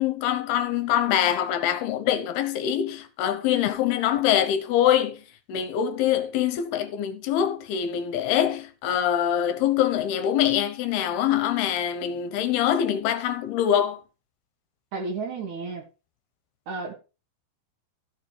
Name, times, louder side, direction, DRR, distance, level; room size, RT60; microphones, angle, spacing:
voice 1, 0.0-5.2 5.5-14.0, left 10 dB, 80° left, 2.8 m, -24 dB
voice 2, 14.9-15.9 16.7-16.9, right 4 dB, 60° right, 2.5 m, -32 dB
14.5 x 4.9 x 4.8 m
omnidirectional pair, 4.7 m